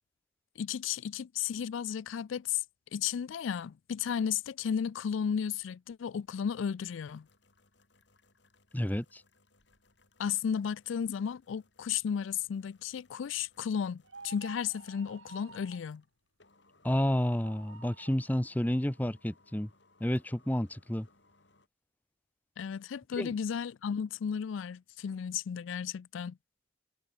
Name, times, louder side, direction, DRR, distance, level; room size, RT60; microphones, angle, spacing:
voice 1, 0.6-2.6 2.9-7.3 10.2-16.0 22.6-26.4, left 7 dB, 80° left, 0.4 m, -34 dB
sound 1, 7.0-21.7, left 3 dB, 65° left, 5.5 m, -67 dB
voice 2, 8.7-9.2 16.8-19.7 20.0-21.1 23.2-23.4, equal, 10° left, 0.8 m, -30 dB
sound 2, 14.0-15.9 17.2-18.2, right 4 dB, 85° right, 2.3 m, -51 dB
head